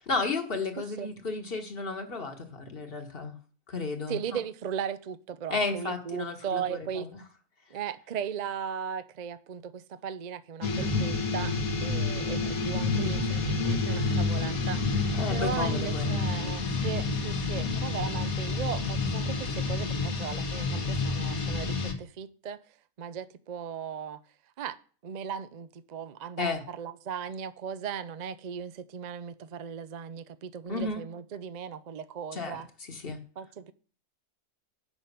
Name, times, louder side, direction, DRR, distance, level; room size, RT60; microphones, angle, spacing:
voice 1, 0.1-3.4 3.7-4.4 5.5-7.1 15.1-16.2 26.4-26.6 30.7-31.0 32.3-33.2, left 3 dB, 40° left, 1.6 m, -33 dB
voice 2, 0.8-1.1 4.1-7.1 7.7-11.5 11.8-22.6 23.0-24.2 24.6-24.8 25.0-32.7 33.4-33.7, right 8 dB, 65° right, 0.4 m, -37 dB
sound 1, 10.6-21.9, left 3 dB, 70° left, 1.8 m, -29 dB
9.1 x 6.2 x 6.7 m
omnidirectional pair, 1.6 m